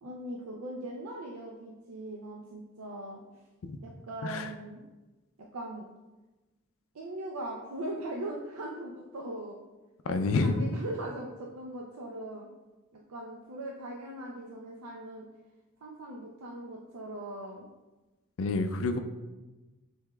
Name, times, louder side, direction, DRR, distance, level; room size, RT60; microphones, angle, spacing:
voice 1, 0.0-3.2 3.8-4.8 5.5-5.9 6.9-9.6 10.4-12.5 13.1-15.3 15.8-17.6, right 1 dB, 90° right, -1 dB, 0.5 m, -40 dB
voice 2, 10.1-10.7 18.4-19.0, left 3 dB, 65° left, 8 dB, 0.4 m, -28 dB
6.6 x 3.4 x 2.2 m, 1.1 s
head